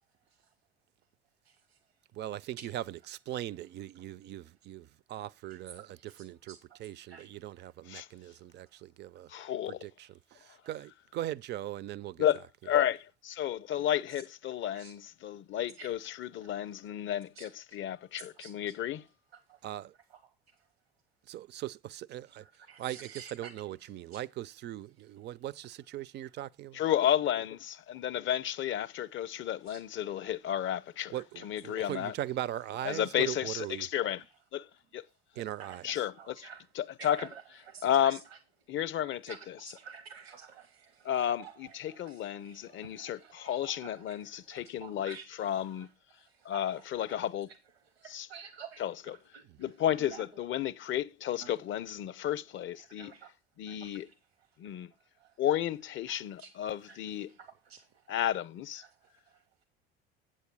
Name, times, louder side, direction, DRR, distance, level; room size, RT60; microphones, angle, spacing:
voice 1, 1.4-2.0 2.6-2.7 5.5-5.6 5.9-7.7 8.1-8.2 8.6-8.8 9.3-9.5 10.6-10.7 14.1-14.2 14.7-14.9 15.7-15.9 16.4-16.5 17.3-17.5 18.2-18.7 19.3-19.7 20.1-20.7 22.4-24.2 29.4-29.8 31.7-31.8 35.3-38.4 38.7-38.8 39.3-50.3 51.4-51.5 52.7-53.3 53.6-55.4 56.1-58.1 58.7-59.6, right 7 dB, 85° right, 1.1 m, -53 dB
voice 2, 2.1-9.3 9.7-12.3 19.6-19.9 21.3-22.5 22.8-26.8 31.1-33.9 35.4-35.9, right 13 dB, 35° right, 0.4 m, -40 dB
voice 3, 9.3-9.9 12.2-19.0 26.7-31.1 31.4-32.1 32.8-34.2 34.5-34.7 34.9-35.0 35.8-36.3 36.8-37.3 37.8-38.2 38.7-39.3 41.0-45.9 46.4-47.5 48.1-48.3 48.8-48.9 49.6-53.1 53.6-54.1 54.6-54.9 55.4-57.3 58.1-58.8, left 11 dB, 40° left, 0.6 m, -32 dB
8.2 x 7.5 x 4.6 m
hypercardioid pair, 65°, 30 cm